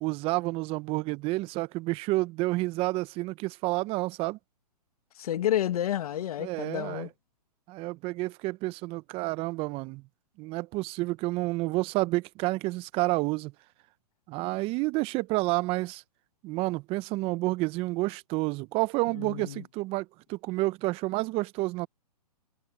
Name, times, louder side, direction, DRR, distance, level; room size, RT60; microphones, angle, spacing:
voice 1, 0.0-4.4 6.4-7.1 7.7-10.0 10.4-13.5 14.3-16.0 16.4-21.9, right 21 dB, 25° right, 0.8 m, -29 dB
voice 2, 5.2-7.1 19.2-19.6, left 11 dB, 60° left, 1.8 m, -30 dB
hypercardioid pair, 135°, 21 cm